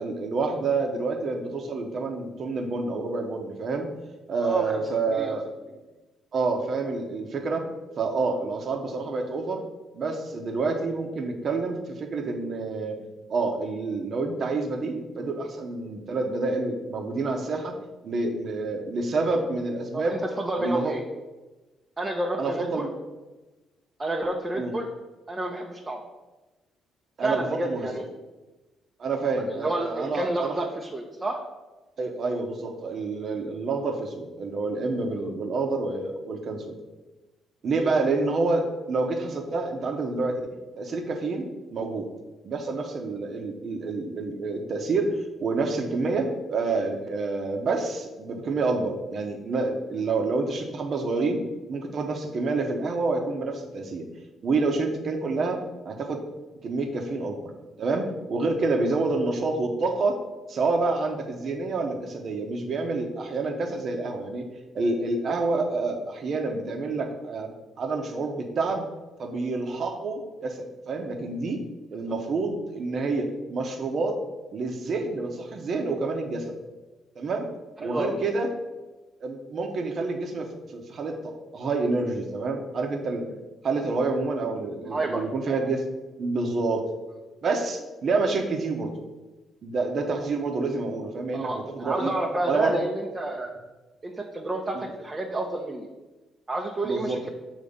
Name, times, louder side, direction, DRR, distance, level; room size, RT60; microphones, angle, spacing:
voice 1, 0.0-3.9 4.3-5.5 6.3-7.6 8.0-9.6 9.9-13.0 13.3-17.7 18.0-20.2 20.6-20.9 22.4-22.9 24.5-24.7 27.2-27.9 29.0-30.5 32.0-36.7 37.6-40.4 40.8-42.1 42.4-51.4 51.7-54.0 54.4-55.6 55.8-56.2 56.6-57.4 57.8-60.2 60.5-64.4 64.7-67.5 67.8-68.9 69.2-71.6 71.9-74.2 74.5-76.5 77.1-77.5 77.8-78.5 79.2-83.2 83.6-85.9 86.2-86.8 87.4-88.9 89.6-92.1 92.4-92.8 94.7-94.9 96.8-97.3, right 3 dB, 55° right, 3 dB, 1.1 m, -28 dB
voice 2, 4.4-5.4 19.9-21.0 22.0-22.9 24.0-24.9 25.3-26.0 27.2-28.0 29.5-31.4 37.8-38.1 58.7-58.8 77.8-78.2 84.8-85.2 91.3-93.5 94.0-95.9 96.5-97.3, right 2 dB, 30° right, 0 dB, 0.9 m, -30 dB
7.1 x 3.1 x 5.2 m, 1.1 s
hypercardioid pair, 50°, 0 cm